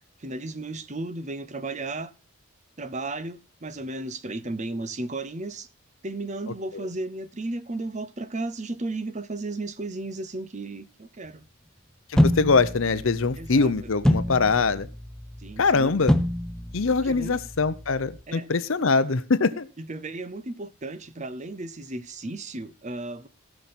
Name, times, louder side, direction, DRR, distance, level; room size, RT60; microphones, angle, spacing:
voice 1, 0.2-2.1 2.8-5.7 6.0-11.5 13.4-13.7 15.4-15.9 17.0-17.3 18.3-18.5 19.8-23.3, right 2 dB, 30° right, 0.7 m, -34 dB
voice 2, 12.1-14.9 15.6-16.1 16.7-19.7, left 4 dB, 65° left, 0.7 m, -23 dB
sound 1, 12.2-18.2, left 1 dB, 5° left, 0.5 m, -27 dB
17.0 x 6.0 x 4.2 m
head